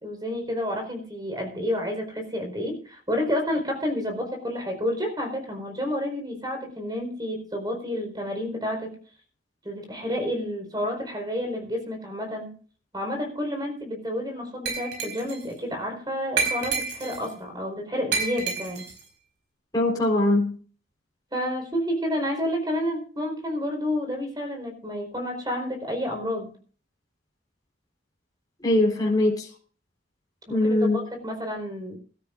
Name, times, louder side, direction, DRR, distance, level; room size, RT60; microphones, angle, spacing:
voice 1, 0.0-9.0 9.6-12.5 12.9-18.9 21.3-26.5 30.5-30.8 31.1-32.0, left 1 dB, 20° right, 3 dB, 4.6 m, -30 dB
Glass, 14.7-15.4 16.4-17.3 18.1-19.0, right 5 dB, 60° right, 5.1 m, -29 dB
voice 2, 19.7-20.5 28.6-29.5 30.5-31.0, left 1 dB, 20° left, -3 dB, 4.1 m, -21 dB
24.0 x 13.0 x 2.5 m, 0.42 s
head